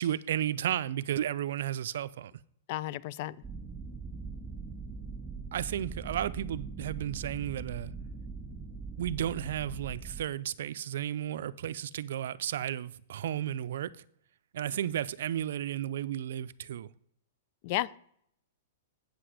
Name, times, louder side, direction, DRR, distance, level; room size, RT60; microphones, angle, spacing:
voice 1, 0.0-2.3 5.5-7.9 9.0-13.9 14.5-16.9, right 11 dB, 70° right, 0.4 m, -33 dB
voice 2, 2.7-3.4 17.6-18.0, left 15 dB, 45° left, 0.4 m, -33 dB
sound 1, 3.4-10.2, right 4 dB, 5° right, 2.1 m, -41 dB
8.1 x 7.8 x 4.9 m
hypercardioid pair, 145°, 0 cm